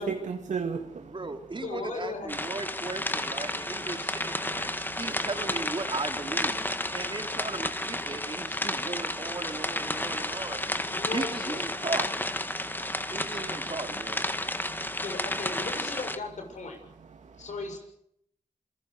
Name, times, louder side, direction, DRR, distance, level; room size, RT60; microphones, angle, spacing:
voice 1, 0.0-1.2 3.7-3.9 4.4-5.2 9.9-10.2 12.5-13.7 14.4-15.0 17.2-17.5, right 5 dB, 80° right, 2.3 m, -38 dB
voice 2, 1.0-4.7 5.0-6.7 6.9-10.6 11.1-12.1 13.1-14.2, right 3 dB, 45° right, 3.2 m, -37 dB
voice 3, 1.6-2.3 10.8-12.2 15.0-16.8 17.4-17.8, left 3 dB, 80° left, 7.1 m, -37 dB
sound 1, 2.3-16.2, left 1 dB, 15° left, 2.0 m, -32 dB
28.0 x 21.0 x 6.7 m
cardioid pair, 45°, 12 cm